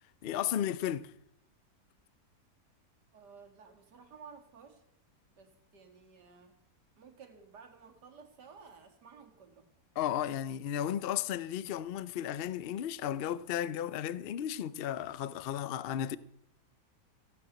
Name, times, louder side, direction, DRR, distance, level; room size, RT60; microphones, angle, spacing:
voice 1, 0.2-1.1 10.0-16.2, left 10 dB, 65° left, 0.5 m, -34 dB
voice 2, 3.1-4.8 5.4-6.6 7.0-9.7, right 5 dB, 85° right, 2.4 m, -54 dB
15.5 x 8.9 x 7.8 m
omnidirectional pair, 1.7 m